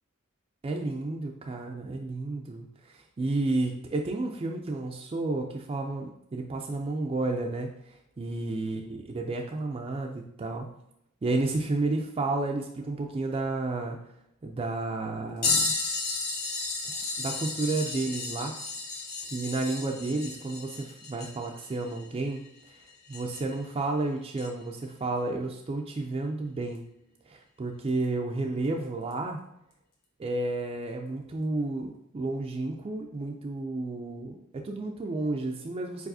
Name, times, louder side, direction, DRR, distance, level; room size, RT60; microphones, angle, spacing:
voice 1, 0.6-10.7 11.2-14.0 14.4-15.7 16.9-18.6 19.3-22.4 23.1-26.8 27.3-29.4 30.2-36.1, right 2 dB, 25° right, 2 dB, 0.3 m, -31 dB
sound 1, 15.4-23.6 24.4-24.5 26.7-26.8 27.9-28.0 29.1-29.2, left 3 dB, 45° left, 1.1 m, -33 dB
4.7 x 4.0 x 2.6 m, 0.78 s
head